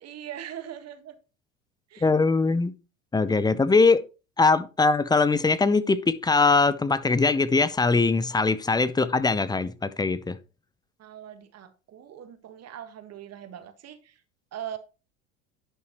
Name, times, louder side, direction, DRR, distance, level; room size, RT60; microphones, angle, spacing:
voice 1, 0.0-1.1 1.9-2.1 3.3-3.5 11.0-14.2 14.5-14.8, right 10 dB, 45° right, 1.6 m, -41 dB
voice 2, 2.0-2.7 3.1-4.0 4.4-10.4, left 4 dB, 10° left, 0.5 m, -21 dB
11.0 x 5.6 x 3.0 m
hypercardioid pair, 75°, 37 cm